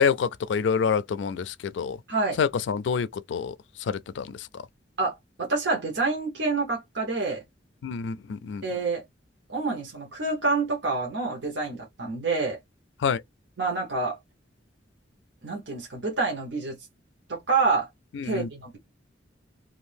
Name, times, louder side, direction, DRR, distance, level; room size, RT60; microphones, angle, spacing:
voice 1, 0.0-2.0 2.4-3.5 3.8-4.6 7.8-8.6 13.0-13.2 18.1-18.5, left 6 dB, 80° left, 0.3 m, -27 dB
voice 2, 2.1-2.4 5.0-7.4 8.6-9.0 9.5-12.6 13.6-14.2 15.4-16.8 17.3-17.9 18.2-18.8, right 3 dB, 80° right, 1.0 m, -27 dB
2.6 x 2.6 x 3.3 m
head